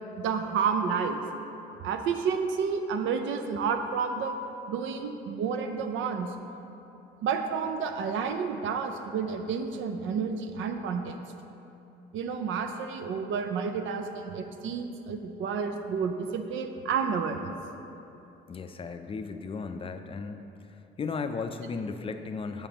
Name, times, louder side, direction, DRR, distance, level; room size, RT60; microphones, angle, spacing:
voice 1, 0.2-1.2 1.8-4.4 4.7-6.3 7.2-11.2 12.1-17.5, right 6 dB, 80° right, 6 dB, 0.4 m, -30 dB
voice 2, 18.5-20.5 21.0-22.7, left 4 dB, 30° left, 8 dB, 0.4 m, -35 dB
7.0 x 5.0 x 2.9 m, 2.9 s
cardioid pair, 90°, 20 cm